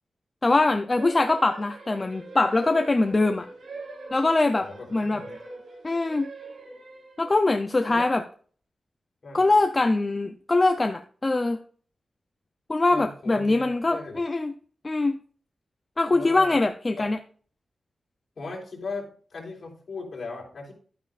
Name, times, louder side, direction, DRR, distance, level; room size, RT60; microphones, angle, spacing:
voice 1, 0.4-3.5 4.1-4.7 4.9-5.2 5.8-6.3 7.2-8.2 9.3-11.6 12.7-14.5 14.8-15.2 16.0-17.2, left 2 dB, 25° left, 7 dB, 0.5 m, -23 dB
sound 1, 1.0-7.5, right 2 dB, 75° right, 3.3 m, -42 dB
voice 2, 4.6-5.4 7.9-8.1 9.2-9.5 12.9-14.2 16.1-16.6 17.0-17.1 18.4-20.7, left 3 dB, 50° left, -2 dB, 3.6 m, -38 dB
11.5 x 9.3 x 2.5 m, 0.44 s
wide cardioid pair, 170°, 0 cm